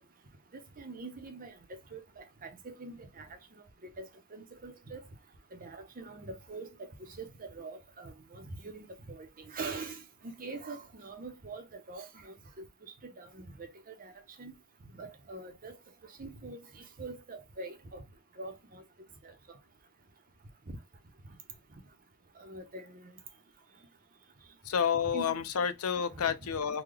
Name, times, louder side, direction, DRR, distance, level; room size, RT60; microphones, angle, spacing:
voice 1, 0.5-3.3 3.8-5.0 5.5-12.7 13.0-13.4 13.9-14.1 14.4-14.5 15.0-15.8 16.2-18.0 18.4-18.8 20.7-20.8 22.4-23.1 25.1-25.4, right 3 dB, 40° right, 0.7 m, -44 dB
voice 2, 24.6-26.8, left 7 dB, 85° left, 0.5 m, -30 dB
3.8 x 2.2 x 3.2 m
head